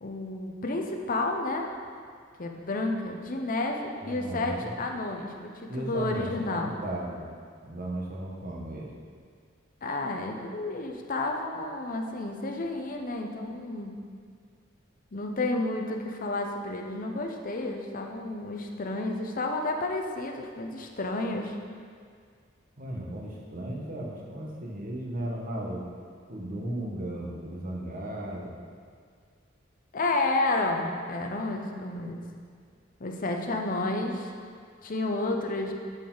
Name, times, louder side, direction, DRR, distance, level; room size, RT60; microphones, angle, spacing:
voice 1, 0.0-1.7 2.4-6.8 9.8-14.0 15.1-21.6 29.9-32.2 33.0-34.3 34.8-35.7, left 2 dB, 45° left, 2 dB, 0.8 m, -31 dB
voice 2, 4.0-4.7 5.7-7.3 7.6-8.9 22.8-25.9 26.3-28.6, right 1 dB, 45° right, -2 dB, 1.3 m, -35 dB
8.9 x 6.7 x 4.0 m, 2.1 s
head